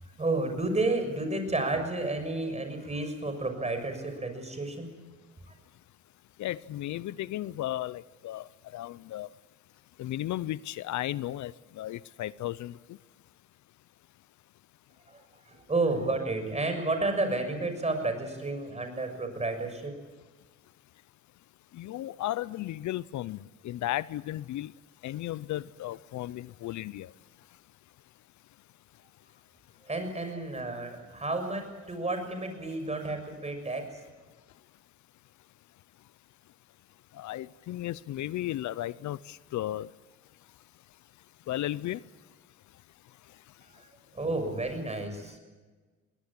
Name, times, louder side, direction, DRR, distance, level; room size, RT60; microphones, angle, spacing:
voice 1, 0.0-4.9 5.5-5.6 15.1-19.9 29.8-33.9 43.6-43.9 44.1-45.4, right 2 dB, 20° right, 6 dB, 6.5 m, -31 dB
voice 2, 6.4-8.5 8.7-9.3 10.0-12.7 21.7-23.4 23.6-24.7 25.0-27.1 37.2-39.9 41.5-42.0, left 14 dB, 70° left, 20 dB, 0.6 m, -34 dB
22.0 x 19.0 x 8.8 m, 1.3 s
cardioid pair, 90°, 30 cm